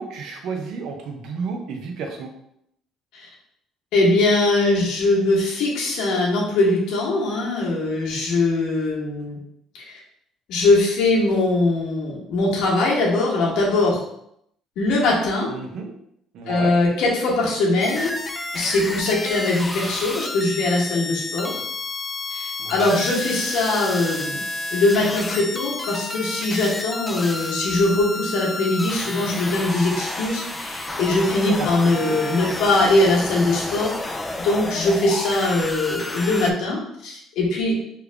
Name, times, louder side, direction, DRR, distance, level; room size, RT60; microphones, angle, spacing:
voice 1, 0.0-2.3 15.5-15.9 16.3-16.7 22.6-23.0 31.6-31.7 32.0-32.5, right 5 dB, 70° right, 3 dB, 0.6 m, -32 dB
voice 2, 3.9-9.4 10.5-14.0 14.8-15.5 16.5-18.1 18.5-21.6 22.3-24.4 24.7-33.9 34.4-37.7, left 2 dB, 80° left, -3 dB, 1.1 m, -21 dB
sound 1, 17.8-36.5, left 2 dB, 15° left, 0.3 m, -30 dB
3.3 x 2.4 x 3.3 m, 0.74 s
cardioid pair, 100°, 0 cm